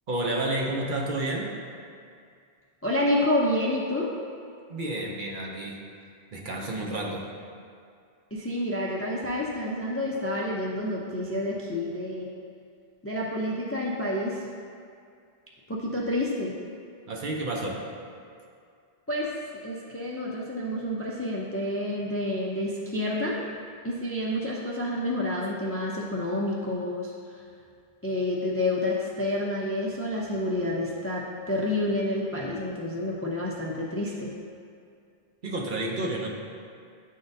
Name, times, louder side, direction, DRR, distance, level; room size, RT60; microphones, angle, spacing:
voice 1, 0.1-1.6 4.7-5.9 6.3-7.3 17.1-17.9 35.4-36.3, right 2 dB, 55° right, -1 dB, 0.8 m, -30 dB
voice 2, 2.8-4.1 8.3-12.3 13.0-14.5 15.7-16.5 19.1-23.4 23.8-27.4 28.0-34.3, left 1 dB, 20° left, -4 dB, 0.4 m, -29 dB
9.9 x 3.9 x 2.6 m, 2.3 s
omnidirectional pair, 1.0 m